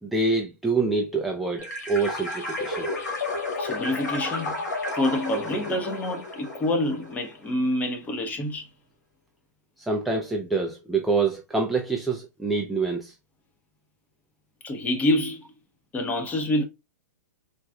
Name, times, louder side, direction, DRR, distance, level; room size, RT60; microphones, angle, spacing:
voice 1, 0.0-2.9 9.8-13.1, right 3 dB, ahead, 0.3 m, -26 dB
sound 1, 1.6-7.3, left 2 dB, 85° left, 1.4 m, -32 dB
voice 2, 3.6-4.5 5.0-8.7 14.6-15.4 15.9-16.6, left 1 dB, 15° left, 0.7 m, -27 dB
3.9 x 2.4 x 2.3 m
hypercardioid pair, 125°, 10 cm